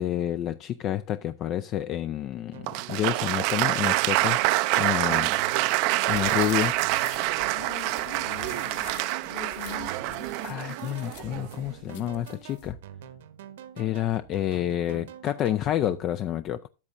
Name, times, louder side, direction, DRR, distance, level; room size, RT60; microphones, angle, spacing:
voice 1, 0.0-4.4 4.8-5.3 6.1-6.8 10.4-12.8 13.8-16.7, left 11 dB, 30° left, 0.4 m, -29 dB
sound 1, 2.5-16.0, right 9 dB, 75° right, 1.3 m, -46 dB
Applause, 2.7-11.6, right 19 dB, 45° right, 0.5 m, -26 dB
sound 2, 6.1-12.7, left 10 dB, 60° left, 1.8 m, -47 dB
voice 2, 7.5-10.3, left 12 dB, 85° left, 1.9 m, -43 dB
13.0 x 7.4 x 2.6 m
supercardioid pair, 155°, 0 cm